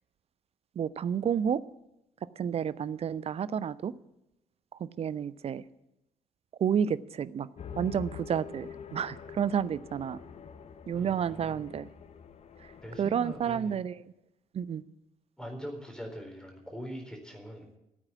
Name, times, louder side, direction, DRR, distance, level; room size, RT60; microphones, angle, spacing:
voice 1, 0.8-1.6 2.4-3.9 4.8-5.6 6.6-7.5 7.8-10.2 10.9-11.9 13.0-14.0 14.5-14.8, right 8 dB, 35° right, 19 dB, 0.6 m, -30 dB
sound 1, 7.6-13.6, left 6 dB, 40° left, 0.9 m, -46 dB
voice 2, 10.9-11.5 12.8-13.7 15.4-17.8, equal, 5° left, 2 dB, 4.1 m, -42 dB
14.5 x 9.0 x 8.5 m, 0.87 s
figure-of-eight pair, 45°, 17 cm